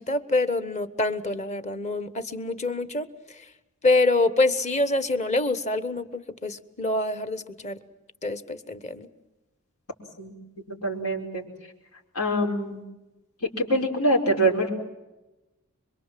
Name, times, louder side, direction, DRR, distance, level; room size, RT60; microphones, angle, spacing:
voice 1, 0.0-3.1 3.8-7.8 8.2-9.1, left 2 dB, 30° left, 12 dB, 1.3 m, -26 dB
voice 2, 10.7-11.4 12.1-12.8 13.4-14.7, right 1 dB, 90° left, 0 dB, 5.0 m, -24 dB
26.0 x 23.5 x 7.6 m, 1.0 s
head